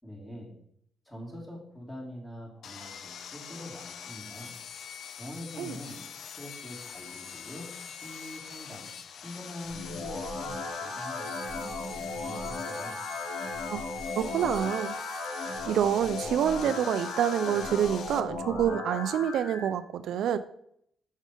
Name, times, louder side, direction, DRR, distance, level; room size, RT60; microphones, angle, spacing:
voice 1, 0.0-0.5 1.0-4.6 5.2-6.0 6.4-8.9 9.2-13.0, left 1 dB, 10° left, -3 dB, 3.1 m, -44 dB
Sawing, 2.6-18.2, left 7 dB, 65° left, 0.6 m, -44 dB
sound 1, 9.6-19.6, left 2 dB, 80° left, 2.7 m, -36 dB
voice 2, 14.2-15.0 15.7-20.4, right 9 dB, 75° right, 12 dB, 0.4 m, -27 dB
6.3 x 5.5 x 5.0 m, 0.69 s
cardioid pair, 90°, 0 cm